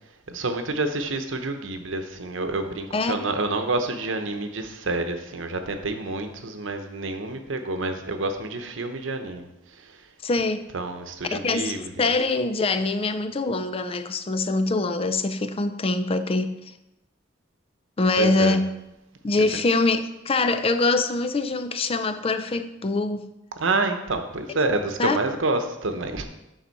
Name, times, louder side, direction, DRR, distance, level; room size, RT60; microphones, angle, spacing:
voice 1, 0.3-9.5 9.8-9.9 10.7-12.0 18.2-18.6 23.6-26.2, right 2 dB, 80° right, 7 dB, 0.8 m, -28 dB
voice 2, 10.2-10.7 11.3-16.6 18.0-18.7 19.2-23.3 24.5-24.6 25.0-25.2, left 3 dB, 30° left, 10 dB, 0.4 m, -24 dB
11.0 x 4.0 x 4.1 m, 0.92 s
head